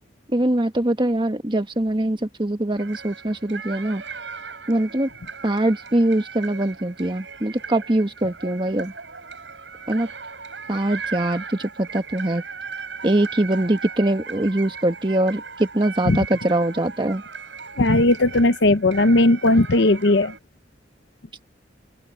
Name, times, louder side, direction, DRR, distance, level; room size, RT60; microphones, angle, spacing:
voice 1, 0.3-4.0 4.7-5.1 5.4-8.9 9.9-10.1 10.7-12.4 13.0-17.2, right 1 dB, 30° right, 1.6 m, -22 dB
sound 1, 2.8-20.4, right 5 dB, 85° right, 7.7 m, -37 dB
voice 2, 17.8-20.3, left 2 dB, 75° left, 0.9 m, -17 dB
open air
head